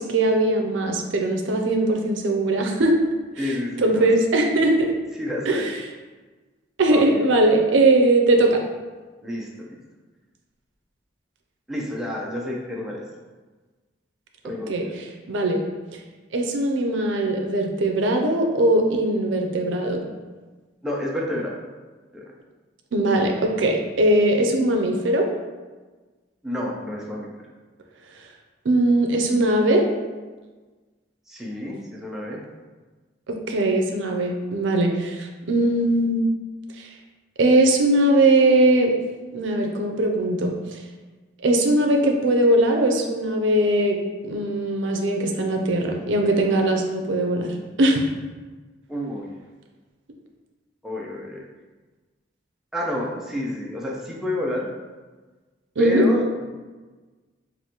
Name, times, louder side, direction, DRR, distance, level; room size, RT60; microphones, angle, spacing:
voice 1, 0.0-3.0 3.4-4.9 5.5-5.7 6.8-8.6 14.7-15.6 16.3-20.0 22.9-25.3 28.6-29.8 33.3-36.3 36.8-36.9 37.4-38.9 39.3-40.5 41.4-44.0 44.2-48.1 55.8-56.1, right 1 dB, 85° right, 3 dB, 0.5 m, -20 dB
voice 2, 3.4-4.1 5.2-5.7 6.9-7.2 9.2-9.7 11.7-13.0 14.4-14.7 20.8-21.6 22.1-22.2 26.4-27.3 31.3-32.4 48.9-49.3 50.8-51.4 52.7-54.7 55.8-56.5, left 1 dB, ahead, -3 dB, 0.5 m, -29 dB
4.8 x 2.5 x 2.9 m, 1.3 s
head